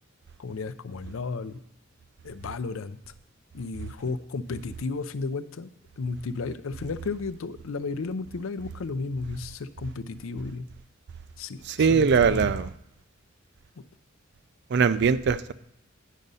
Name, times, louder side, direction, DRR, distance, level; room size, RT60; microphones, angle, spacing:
voice 1, 0.4-1.6 2.2-3.0 3.5-5.7 6.0-10.6 11.4-12.7, left 4 dB, 80° left, 12 dB, 0.5 m, -33 dB
voice 2, 11.7-12.7 14.7-15.5, right 6 dB, 55° right, 14 dB, 0.4 m, -21 dB
9.2 x 5.0 x 5.5 m, 0.80 s
head